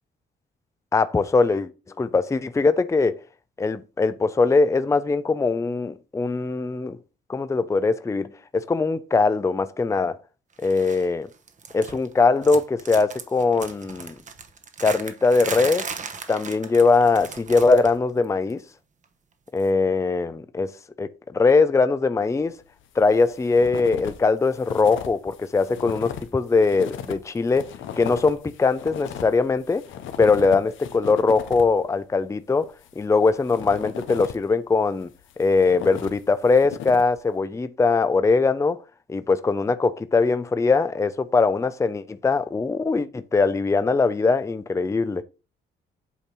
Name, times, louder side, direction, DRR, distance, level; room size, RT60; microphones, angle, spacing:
voice 1, 0.9-1.7 2.0-3.2 3.6-7.0 7.3-10.2 10.6-11.3 11.7-14.2 14.8-15.9 16.3-18.6 19.5-20.7 21.0-22.6 23.0-27.7 28.0-29.9 30.2-35.1 35.4-38.8 39.1-45.2, left 4 dB, 15° left, 0.5 m, -21 dB
sound 1, 10.6-11.1 11.3-12.1 12.4-18.0 18.2-18.5 19.6-19.7, right 5 dB, 40° right, 1.0 m, -37 dB
sound 2, 22.8-24.2 24.4-31.8 32.6-34.5 35.0-37.2, left 9 dB, 75° left, 0.8 m, -37 dB
8.4 x 2.9 x 5.2 m
cardioid pair, 90°, 20 cm